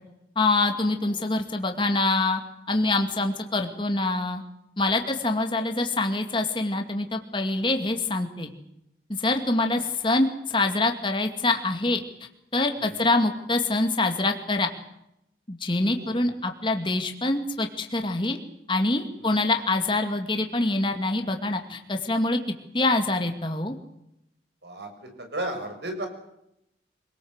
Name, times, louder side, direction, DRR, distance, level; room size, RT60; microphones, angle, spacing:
voice 1, 0.4-2.4 2.7-4.4 4.8-8.5 9.1-12.0 12.5-14.7 15.5-18.4 18.7-22.4 22.7-23.7, left 2 dB, 30° left, 4 dB, 2.3 m, -25 dB
voice 2, 25.2-26.1, right 1 dB, 75° right, 5 dB, 7.0 m, -34 dB
26.0 x 18.5 x 8.1 m, 0.82 s
head